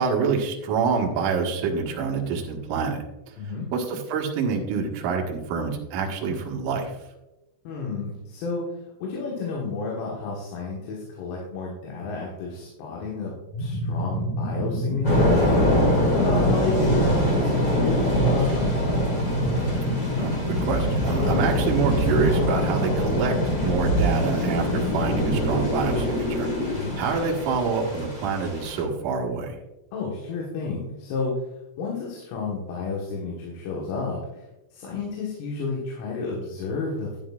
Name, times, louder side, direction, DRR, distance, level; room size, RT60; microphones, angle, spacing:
voice 1, 0.0-3.3 3.7-6.9 20.2-26.5 27.0-29.6 34.9-35.0, right 5 dB, 90° right, -1 dB, 1.8 m, -27 dB
voice 2, 3.4-3.7 7.7-8.6 9.0-15.4 15.8-19.1 26.7-27.0 29.9-31.3 31.8-34.2 34.7-37.2, left 4 dB, 90° left, -3 dB, 4.3 m, -31 dB
sound 1, 13.5-26.8, equal, 60° left, 2.5 m, -28 dB
Thunder / Rain, 15.0-28.8, equal, 40° left, 1.2 m, -24 dB
11.5 x 10.0 x 2.4 m, 0.99 s
omnidirectional pair, 6.0 m